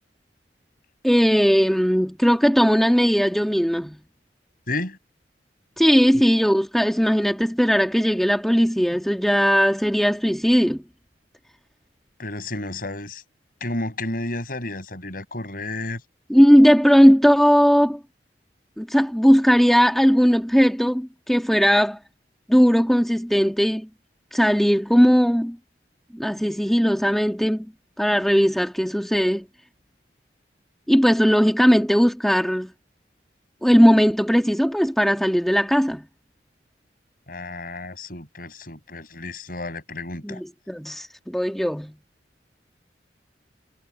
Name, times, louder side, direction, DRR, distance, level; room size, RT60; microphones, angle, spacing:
voice 1, 1.0-4.0 5.8-10.8 16.3-18.0 18.8-22.0 22.5-23.9 24.3-25.6 26.1-27.6 28.0-29.4 30.9-32.7 33.6-36.0 40.2-41.9, equal, ahead, 1.7 m, -18 dB
voice 2, 4.7-5.0 6.1-6.2 12.2-13.2 13.6-16.0 37.3-40.4, left 2 dB, 55° left, 6.7 m, -31 dB
head